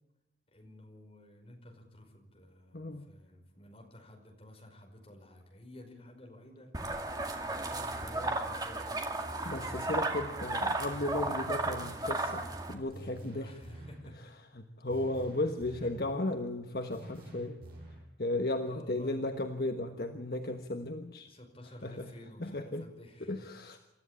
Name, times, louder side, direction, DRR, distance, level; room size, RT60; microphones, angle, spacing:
voice 1, 0.5-6.7 7.1-8.9 13.2-14.3 18.6-19.2 21.3-23.5, left 1 dB, 30° left, 2 dB, 5.3 m, -52 dB
voice 2, 2.7-3.1 9.4-13.5 14.5-17.6 18.2-21.3 21.8-22.1 22.4-22.9 23.2-23.8, left 2 dB, 55° left, 6 dB, 1.3 m, -35 dB
sound 1, 6.7-12.7, right 2 dB, 20° right, 2.0 m, -34 dB
sound 2, 10.9-12.1 12.9-14.1 14.9-16.1 16.9-18.1, right 1 dB, 55° right, 7.8 m, -48 dB
28.0 x 14.0 x 8.8 m, 0.91 s
head